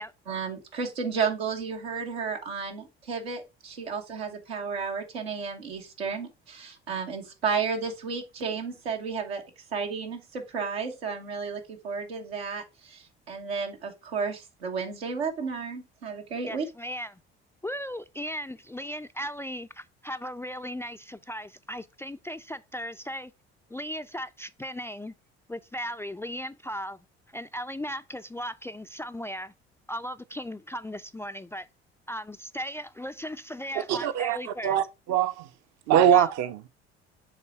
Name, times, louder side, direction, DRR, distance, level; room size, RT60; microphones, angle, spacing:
voice 1, 0.3-9.4 9.7-16.7, right 5 dB, 85° right, 1.3 m, -32 dB
voice 2, 16.5-17.2 17.6-23.3 23.7-25.1 25.5-27.1 27.3-29.5 29.9-31.7 32.1-34.8 36.1-36.3, equal, 10° left, 0.3 m, -37 dB
voice 3, 33.9-35.5 35.9-36.7, right 10 dB, 55° right, 0.8 m, -23 dB
7.2 x 3.3 x 4.4 m
hypercardioid pair, 60°, 31 cm